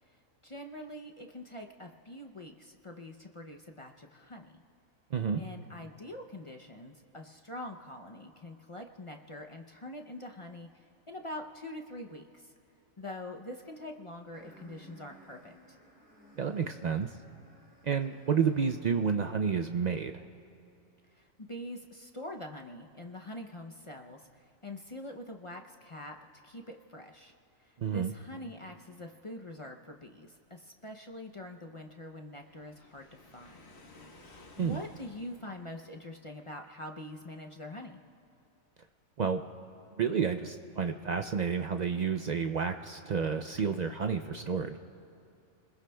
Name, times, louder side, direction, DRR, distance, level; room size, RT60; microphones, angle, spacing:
voice 1, 0.4-4.6 5.4-12.5 13.0-15.8 21.1-26.2 26.4-27.3 27.6-33.6 34.2-38.0, left 1 dB, 40° left, 2 dB, 0.5 m, -44 dB
sound 1, 14.3-19.2, right 2 dB, 5° right, 2.9 m, -59 dB
voice 2, 16.4-17.2 17.8-20.2 27.8-28.1 34.6-34.8 39.2-39.4 40.0-44.8, right 6 dB, 80° right, 6 dB, 0.4 m, -30 dB
Waves surf, 32.4-35.9, left 2 dB, 55° left, 1.5 m, -56 dB
29.0 x 21.0 x 2.3 m, 2.6 s
omnidirectional pair, 1.4 m